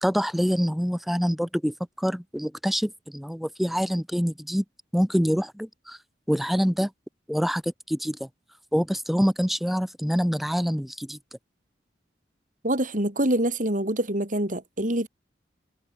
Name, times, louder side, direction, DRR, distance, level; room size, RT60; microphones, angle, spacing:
voice 1, 0.0-4.6 4.9-6.0 6.3-6.9 7.3-8.3 8.7-11.2, equal, ahead, 0.9 m, -25 dB
voice 2, 12.6-15.1, right 1 dB, 45° right, 4.2 m, -25 dB
head